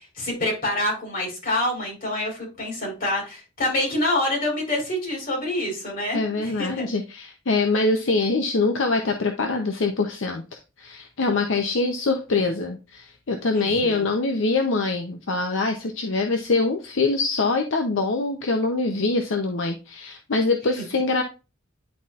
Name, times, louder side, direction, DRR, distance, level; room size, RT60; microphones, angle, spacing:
voice 1, 0.0-6.9 13.5-14.1, left 1 dB, 40° left, -2 dB, 4.0 m, -27 dB
voice 2, 6.1-10.4 10.8-21.2, left 3 dB, 65° left, 4 dB, 0.7 m, -24 dB
10.5 x 4.1 x 2.5 m, 0.29 s
head